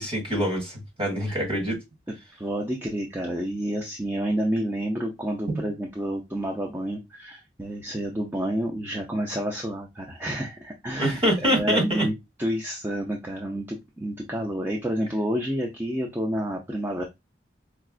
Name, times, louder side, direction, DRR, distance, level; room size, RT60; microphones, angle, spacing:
voice 1, 0.0-1.8 5.5-5.6 11.0-12.1, equal, 35° right, 1.9 m, -25 dB
voice 2, 2.4-12.1 12.4-17.0, right 1 dB, 10° right, 0.5 m, -29 dB
4.6 x 2.3 x 2.4 m
head